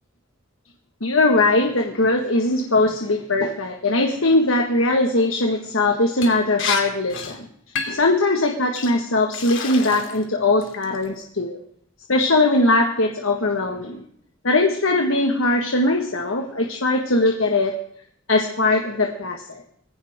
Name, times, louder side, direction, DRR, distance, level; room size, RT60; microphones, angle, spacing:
voice 1, 1.0-7.5 7.9-11.6 12.1-14.0 14.4-17.7 18.3-19.6, left 2 dB, 85° left, 2 dB, 1.7 m, -20 dB
Liquid, 6.2-6.3 6.6-6.8 7.1-7.3 7.8-8.1 8.7-8.9 9.3-10.2 10.6-11.0, left 6 dB, 65° left, 2.8 m, -29 dB
20.0 x 16.5 x 3.7 m, 0.67 s
head